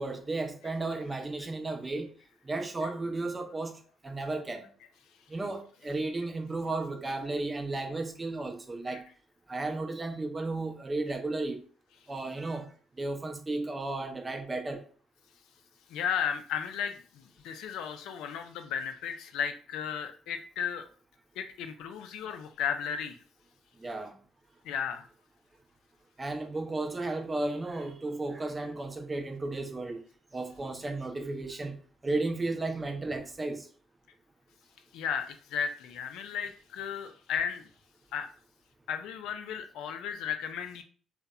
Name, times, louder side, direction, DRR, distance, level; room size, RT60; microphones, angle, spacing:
voice 1, 0.0-2.1 2.4-4.7 5.3-9.0 9.5-11.6 12.1-12.7 13.0-14.8 23.8-24.2 26.2-30.0 30.3-31.8 32.0-33.7, right 2 dB, 25° right, 0.5 m, -34 dB
voice 2, 15.9-20.9 21.4-23.2 24.6-25.1 34.9-37.7 38.1-38.3 38.9-40.8, left 8 dB, 80° left, 0.3 m, -34 dB
2.7 x 2.1 x 2.3 m
supercardioid pair, 70°, 0 cm